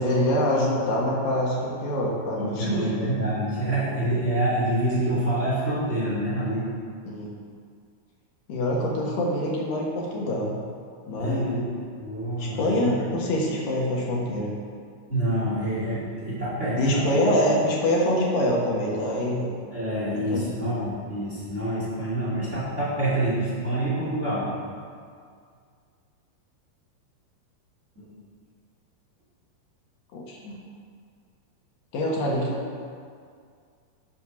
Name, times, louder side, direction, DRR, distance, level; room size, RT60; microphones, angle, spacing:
voice 1, 0.0-2.9 7.0-7.3 8.5-10.5 11.1-11.5 12.4-14.5 16.8-19.5 20.1-20.5 30.1-30.6 31.9-32.6, left 1 dB, 65° left, -3 dB, 3.1 m, -25 dB
voice 2, 2.3-6.7 11.2-11.6 12.0-12.9 15.1-17.0 19.7-24.5 27.9-28.1 30.5-30.6, right 1 dB, 20° right, -8 dB, 2.8 m, -27 dB
12.0 x 7.4 x 6.4 m, 2.2 s
omnidirectional pair, 4.5 m